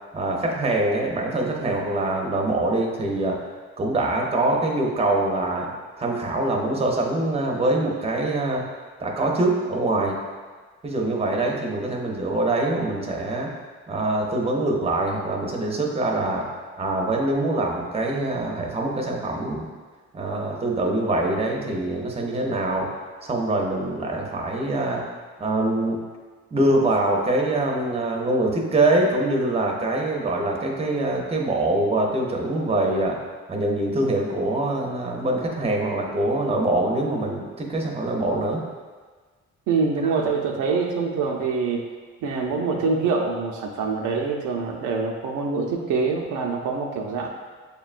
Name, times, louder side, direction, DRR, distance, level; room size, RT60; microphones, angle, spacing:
voice 1, 0.1-3.4 3.8-5.7 6.0-8.7 9.0-10.2 10.8-13.5 13.9-16.5 16.8-19.7 20.1-22.9 23.2-25.0 25.4-26.0 26.5-33.2 33.5-38.6, right 2 dB, 20° right, 0 dB, 0.6 m, -24 dB
voice 2, 39.7-41.9 42.2-47.3, right 4 dB, 80° right, 1 dB, 0.6 m, -25 dB
6.6 x 2.2 x 2.4 m, 1.5 s
cardioid pair, 90°, 30 cm